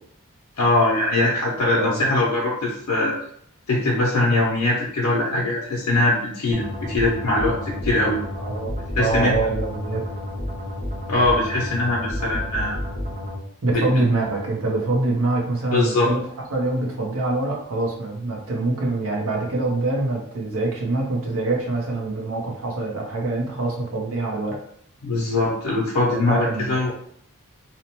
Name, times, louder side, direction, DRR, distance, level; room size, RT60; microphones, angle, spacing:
voice 1, 0.6-3.1 3.7-8.2 9.0-9.3 11.1-12.8 13.7-13.9 15.7-16.1 25.0-26.9, left 2 dB, 80° left, -4 dB, 0.6 m, -21 dB
voice 2, 1.6-2.0 8.4-10.0 13.6-16.2 16.5-24.6 26.1-26.9, right 2 dB, 65° right, -1 dB, 0.7 m, -25 dB
sound 1, 6.5-13.4, left 1 dB, 30° right, 0.7 m, -30 dB
2.8 x 2.1 x 2.9 m, 0.65 s
head